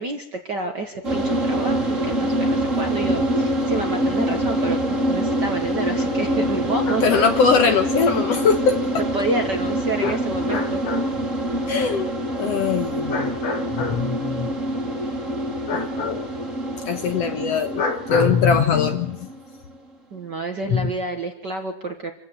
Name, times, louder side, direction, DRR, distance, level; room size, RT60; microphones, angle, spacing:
voice 1, 0.0-7.0 9.1-10.8 20.1-22.1, right 2 dB, 45° right, 4 dB, 1.6 m, -29 dB
sound 1, 1.0-19.8, right 1 dB, 25° right, 2.5 m, -25 dB
voice 2, 6.9-8.8 10.0-10.2 10.5-11.0 11.7-12.1 12.4-14.5 15.7-16.3 16.9-19.2 20.7-20.9, left 5 dB, 60° left, 7 dB, 1.9 m, -21 dB
26.5 x 15.5 x 8.1 m, 0.75 s
omnidirectional pair, 3.7 m